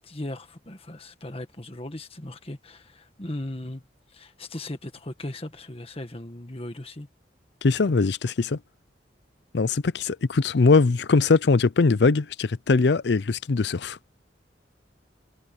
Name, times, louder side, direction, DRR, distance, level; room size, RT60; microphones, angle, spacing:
voice 1, 0.0-3.8 4.1-7.1, left 1 dB, 30° left, 1.7 m, -37 dB
voice 2, 7.6-8.6 9.5-14.0, left 4 dB, 65° left, 0.5 m, -21 dB
head